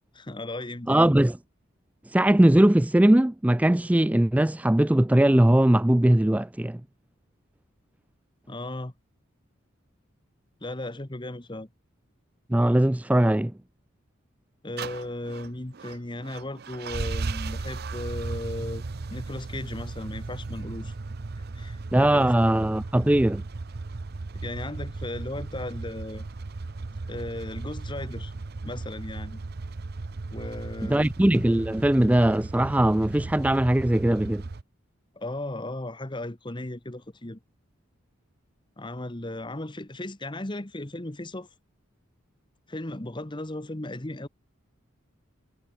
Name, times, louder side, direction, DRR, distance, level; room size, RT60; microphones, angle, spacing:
voice 1, 0.1-1.1 8.5-8.9 10.6-11.7 14.6-18.8 19.1-20.9 21.5-22.5 24.3-26.3 27.1-28.3 28.6-29.4 30.3-31.1 35.1-37.4 38.8-41.5 42.7-44.3, left 1 dB, 25° left, 1.3 m, -36 dB
voice 2, 0.9-1.4 2.1-6.8 12.5-13.5 21.9-23.4 30.8-34.4, right 1 dB, 5° right, 0.4 m, -20 dB
sound 1, 14.8-34.6, right 3 dB, 50° right, 0.6 m, -36 dB
head